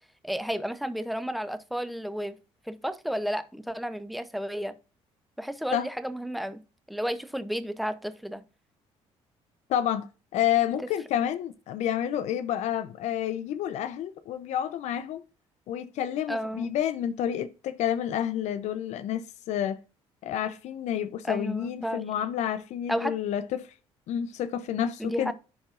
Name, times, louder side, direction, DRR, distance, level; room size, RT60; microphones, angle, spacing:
voice 1, 0.2-2.4 2.7-4.8 5.4-6.6 6.9-8.4 16.3-16.7 21.2-22.1 22.9-23.2 25.0-25.3, equal, ahead, 0.7 m, -32 dB
voice 2, 9.7-10.1 10.3-15.2 15.7-19.8 20.2-23.7 24.1-25.3, left 10 dB, 75° left, 0.6 m, -29 dB
10.5 x 4.0 x 2.5 m
cardioid pair, 90°, 12 cm